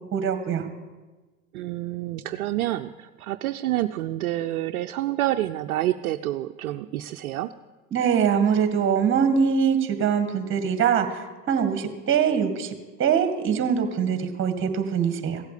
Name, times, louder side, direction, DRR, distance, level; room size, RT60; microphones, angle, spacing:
voice 1, 0.1-0.7 7.9-12.7 13.0-15.4, right 7 dB, 30° right, 8 dB, 2.0 m, -23 dB
voice 2, 1.5-7.5, right 14 dB, 70° right, 6 dB, 0.7 m, -28 dB
16.0 x 8.0 x 8.5 m, 1.3 s
hypercardioid pair, 100°, 43 cm